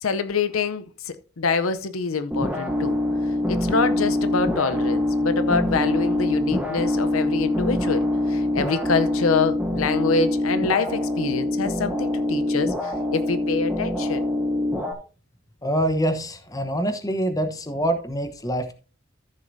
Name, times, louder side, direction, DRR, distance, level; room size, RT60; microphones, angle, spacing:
voice 1, 0.0-3.0 3.5-14.3, left 4 dB, 85° left, 0.7 m, -26 dB
sound 1, 2.3-14.9, left 1 dB, 5° right, 1.2 m, -24 dB
voice 2, 15.6-18.7, right 1 dB, 15° left, 0.9 m, -25 dB
14.0 x 6.6 x 2.7 m
head